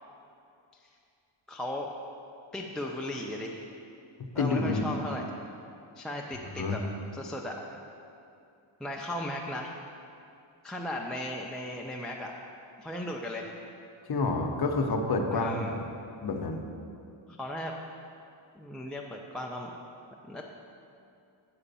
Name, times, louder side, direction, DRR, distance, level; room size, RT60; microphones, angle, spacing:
voice 1, 1.5-1.9 2.5-3.7 4.3-5.3 6.0-6.8 7.1-7.8 8.8-9.7 10.6-12.3 12.8-13.5 15.3-15.8 17.3-17.7 18.5-19.7 20.3-20.4, left 1 dB, ahead, -1 dB, 0.4 m, -36 dB
voice 2, 4.4-4.8 6.6-6.8 14.1-15.8 16.2-16.6, left 3 dB, 50° left, 3 dB, 0.9 m, -28 dB
8.7 x 5.0 x 6.8 m, 2.6 s
wide cardioid pair, 135°, 50 cm